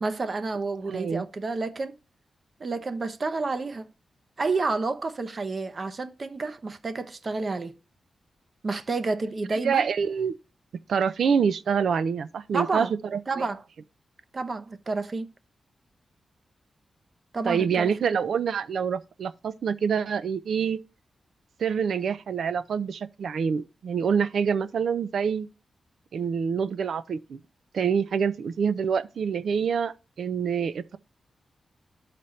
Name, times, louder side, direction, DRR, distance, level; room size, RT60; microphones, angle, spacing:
voice 1, 0.0-2.0 2.6-3.9 4.4-7.8 8.6-9.9 12.5-12.9 13.3-13.6 14.3-15.3 17.3-18.1, right 3 dB, 45° right, 0.7 m, -30 dB
voice 2, 0.9-1.2 9.5-10.3 10.9-13.5 17.5-20.8 21.6-25.5 26.1-27.4 27.7-31.0, right 6 dB, 80° right, 0.5 m, -26 dB
12.5 x 4.2 x 3.2 m
cardioid pair, 90°, 0 cm